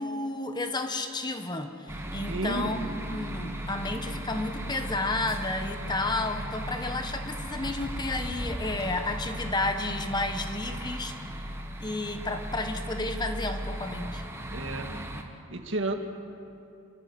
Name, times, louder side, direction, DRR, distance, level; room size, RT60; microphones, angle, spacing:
voice 1, 0.0-11.4 11.8-14.2, left 2 dB, 20° left, 6 dB, 1.1 m, -32 dB
sound 1, 1.8-9.2, equal, 45° right, 3.3 m, -47 dB
sound 2, 1.9-15.2, right 1 dB, 15° right, 1.5 m, -37 dB
voice 2, 2.3-2.8 14.5-14.9 15.5-15.9, right 2 dB, 60° right, 5 dB, 1.8 m, -31 dB
sound 3, 2.8-3.2 3.5-3.6 3.9-4.1 5.3-6.3 6.8-9.1, equal, 85° left, 7.1 m, -43 dB
28.5 x 14.5 x 8.6 m, 2.8 s
head